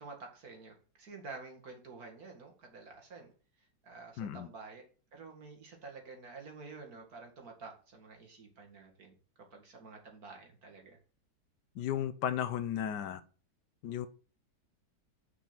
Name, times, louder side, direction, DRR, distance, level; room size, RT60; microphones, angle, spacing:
voice 1, 0.0-3.3 3.6-4.8 5.1-9.1 9.5-11.0, right 4 dB, 55° right, 2.5 m, -50 dB
voice 2, 4.2-4.5 11.7-13.2 13.8-14.1, left 10 dB, 75° left, 1.3 m, -34 dB
6.6 x 5.3 x 5.9 m
omnidirectional pair, 1.9 m